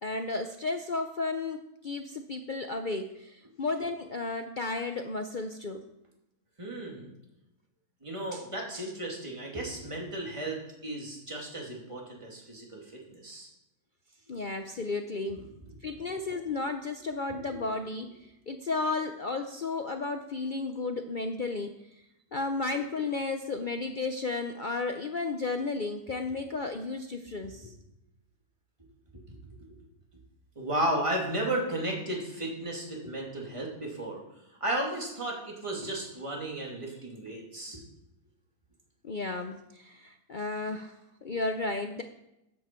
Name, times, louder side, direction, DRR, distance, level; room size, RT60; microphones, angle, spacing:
voice 1, 0.0-1.6 1.8-5.8 8.3-8.4 8.7-8.9 14.3-15.5 15.8-22.0 22.3-27.7 39.0-42.0, left 3 dB, 55° left, 6 dB, 0.5 m, -33 dB
voice 2, 6.6-7.1 8.0-13.5 29.1-29.4 29.7-29.8 30.6-34.2 34.6-37.8, right 1 dB, 20° right, -2 dB, 2.5 m, -34 dB
13.0 x 8.8 x 4.5 m, 0.88 s
omnidirectional pair, 1.6 m